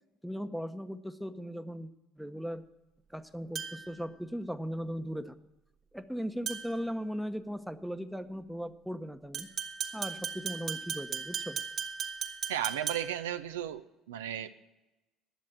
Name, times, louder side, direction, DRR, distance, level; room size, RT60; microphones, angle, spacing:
voice 1, 0.2-1.9 2.2-2.6 3.1-5.4 5.9-9.5 9.9-11.6, equal, ahead, 9 dB, 0.8 m, -38 dB
sound 1, 3.6-4.0 6.5-6.9 9.3-13.3, right 7 dB, 50° right, 1.6 m, -37 dB
voice 2, 12.5-14.5, right 10 dB, 90° right, 10 dB, 0.4 m, -35 dB
10.0 x 7.4 x 8.6 m, 1.0 s
hypercardioid pair, 65°, 0 cm